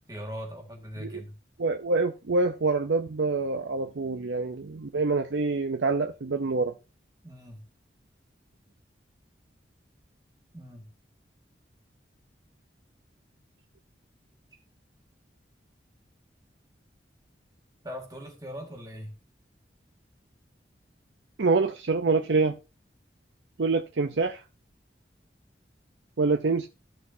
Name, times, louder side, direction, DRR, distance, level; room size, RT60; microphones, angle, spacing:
voice 1, 0.1-1.4 7.2-7.6 10.5-10.9 17.8-19.1, equal, 20° right, 1.8 m, -40 dB
voice 2, 1.6-6.7 21.4-22.5 23.6-24.4 26.2-26.7, right 3 dB, 85° right, 0.6 m, -26 dB
15.0 x 6.3 x 2.7 m
head